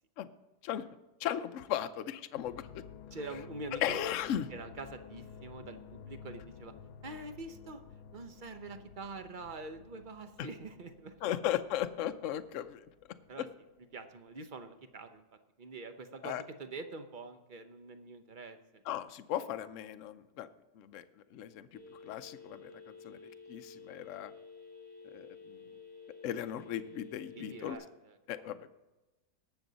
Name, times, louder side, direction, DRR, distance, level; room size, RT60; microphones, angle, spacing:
voice 1, 1.2-2.8 3.3-3.4 3.7-4.5 10.4-10.5 11.2-12.8 13.4-13.5 16.2-16.4 18.9-20.5 20.8-21.0 21.3-24.3 25.1-25.6 26.2-27.8 28.3-28.7, left 11 dB, 65° left, 10 dB, 0.9 m, -37 dB
sound 1, 2.4-14.5 14.7-15.2, left 7 dB, 85° left, 1.2 m, -53 dB
voice 2, 3.1-4.1 4.5-6.7 7.0-7.8 8.1-11.4 13.3-13.5 13.9-15.2 15.6-18.8 27.3-28.2 28.4-28.6, right 3 dB, 40° right, 8 dB, 0.7 m, -45 dB
Telephone, 21.7-27.8, left 4 dB, 5° left, 1.6 m, -51 dB
18.5 x 7.0 x 4.0 m, 1.1 s
omnidirectional pair, 1.7 m